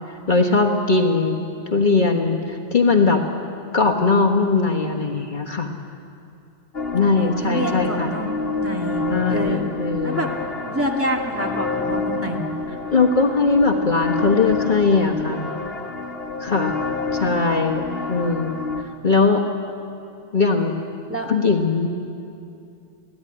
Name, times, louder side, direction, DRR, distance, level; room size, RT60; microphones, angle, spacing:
voice 1, 0.3-1.4 1.7-3.2 3.7-5.8 6.9-8.1 9.1-10.3 12.9-15.5 16.4-16.8 17.1-18.6 19.0-19.4 20.3-20.7 21.3-21.9, left 4 dB, 45° left, 2 dB, 1.6 m, -20 dB
sound 1, 6.7-18.8, left 3 dB, 65° left, 1.7 m, -28 dB
voice 2, 7.2-9.0 9.3-9.6 10.0-10.3 10.6-12.5 21.1-21.3, equal, 10° right, 0 dB, 2.3 m, -27 dB
22.5 x 16.0 x 9.9 m, 2.6 s
omnidirectional pair, 1.1 m